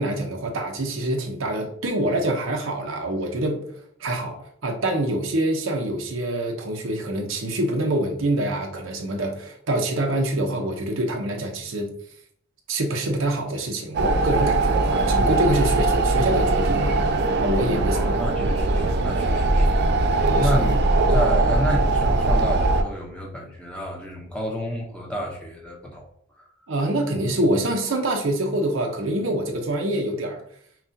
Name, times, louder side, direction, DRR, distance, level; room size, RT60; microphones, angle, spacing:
voice 1, 0.0-3.7 4.0-11.9 12.7-16.9 17.4-18.2 20.3-20.5 26.7-30.4, right 1 dB, 75° right, 2 dB, 0.8 m, -25 dB
sound 1, 13.9-22.8, right 2 dB, 55° right, 0.4 m, -21 dB
voice 2, 17.9-19.8 20.4-20.8 21.1-26.0, equal, 5° left, -2 dB, 0.8 m, -30 dB
5.8 x 2.4 x 2.8 m, 0.64 s
head